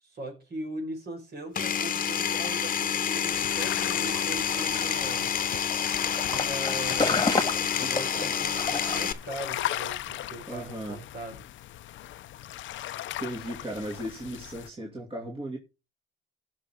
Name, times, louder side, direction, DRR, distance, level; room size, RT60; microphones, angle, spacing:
voice 1, 0.0-5.3 6.3-11.4, right 2 dB, 55° right, 5.2 m, -40 dB
Power tool, 1.5-9.1, left 8 dB, 45° left, 1.0 m, -28 dB
sound 1, 3.3-14.7, left 13 dB, 75° left, 0.6 m, -38 dB
sound 2, 4.0-9.1, left 3 dB, 20° left, 1.6 m, -32 dB
voice 2, 10.5-11.0 13.2-15.6, right 1 dB, 30° right, 2.6 m, -36 dB
16.5 x 6.3 x 3.7 m
cardioid pair, 90°, 20 cm